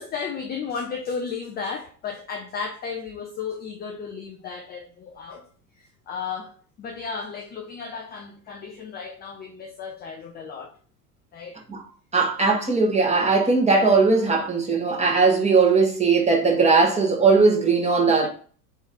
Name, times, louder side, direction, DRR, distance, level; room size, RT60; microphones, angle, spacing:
voice 1, 0.0-5.5 6.1-6.5 6.8-10.7 11.3-11.6 18.2-18.3, left 5 dB, 20° left, 0.5 m, -34 dB
voice 2, 12.1-18.3, right 4 dB, 15° right, 1.3 m, -19 dB
4.1 x 3.4 x 3.6 m
figure-of-eight pair, 75°, 49 cm